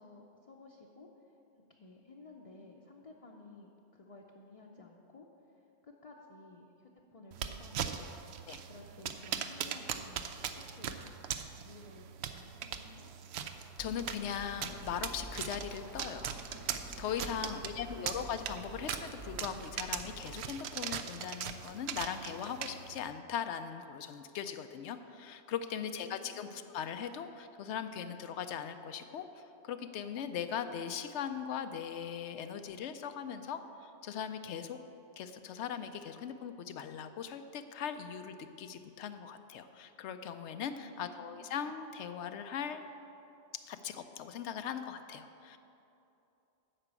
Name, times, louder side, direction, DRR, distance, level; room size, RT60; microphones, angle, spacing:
voice 1, 0.0-1.3 1.6-5.3 5.5-11.0 11.6-13.1 17.4-18.1 25.8-26.5 40.8-41.5, left 2 dB, 40° left, 0 dB, 0.7 m, -55 dB
sound 1, 7.3-23.1, right 8 dB, 75° right, 0.8 m, -41 dB
voice 2, 13.8-16.4 17.0-34.8 35.2-42.8 43.5-45.6, left 8 dB, 90° left, 9 dB, 0.9 m, -40 dB
sound 2, 13.8-20.5, right 2 dB, 20° right, 0.5 m, -49 dB
8.8 x 6.0 x 8.1 m, 2.8 s
omnidirectional pair, 1.1 m